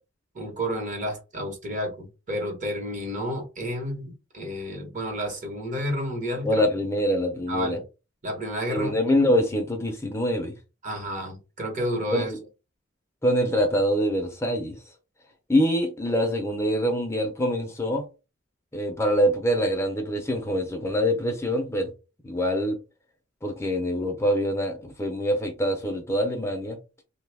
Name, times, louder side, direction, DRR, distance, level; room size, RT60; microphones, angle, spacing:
voice 1, 0.3-6.6 7.5-7.8 8.2-8.9 10.8-12.3, equal, 40° right, 1.0 m, -31 dB
voice 2, 6.4-7.8 8.7-10.5 12.1-12.2 13.2-14.8 15.5-18.0 18.7-21.9 22.2-22.8 23.4-26.8, equal, 15° left, 0.6 m, -24 dB
3.1 x 2.3 x 3.3 m
head